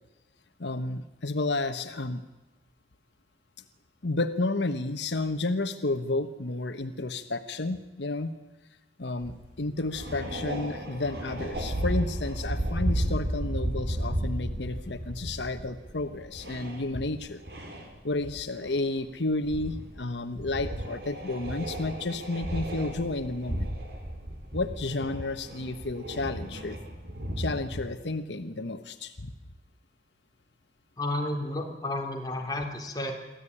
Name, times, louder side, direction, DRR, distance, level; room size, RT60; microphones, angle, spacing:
voice 1, 0.6-2.2 4.0-8.3 9.0-17.4 18.0-23.7 24.5-26.8 27.4-29.3, left 2 dB, 85° left, 10 dB, 1.2 m, -31 dB
sound 1, 9.2-9.5 9.8-18.3 18.6-18.9 19.4-20.0 20.4-27.9, right 1 dB, 70° right, 4.5 m, -34 dB
voice 2, 31.0-33.1, left 1 dB, 20° left, 1 dB, 3.4 m, -32 dB
24.0 x 15.0 x 9.9 m, 1.1 s
head